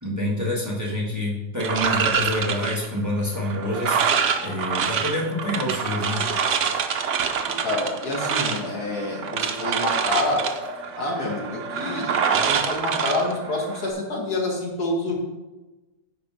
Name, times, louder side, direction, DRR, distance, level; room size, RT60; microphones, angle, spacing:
voice 1, 0.0-6.2, left 1 dB, 10° right, -3 dB, 1.6 m, -27 dB
sound 1, 1.6-13.9, right 6 dB, 55° right, 0.9 m, -26 dB
sound 2, 3.7-5.0 5.8-7.4 8.1-9.2 10.0-11.2, left 2 dB, 15° left, 1.9 m, -39 dB
voice 2, 7.4-10.4 11.0-15.1, left 2 dB, 70° left, -2 dB, 2.4 m, -27 dB
10.0 x 4.4 x 5.6 m, 1.1 s
omnidirectional pair, 1.7 m